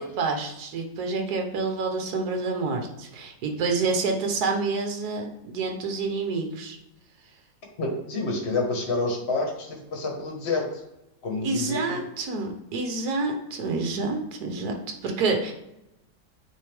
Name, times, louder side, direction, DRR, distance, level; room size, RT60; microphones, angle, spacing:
voice 1, 0.2-6.8 11.4-14.8 15.0-15.5, right 3 dB, 65° right, 3 dB, 1.4 m, -28 dB
voice 2, 7.8-10.7 11.2-12.0, left 3 dB, 40° left, 0 dB, 1.5 m, -28 dB
9.0 x 3.4 x 3.4 m, 0.87 s
omnidirectional pair, 1.8 m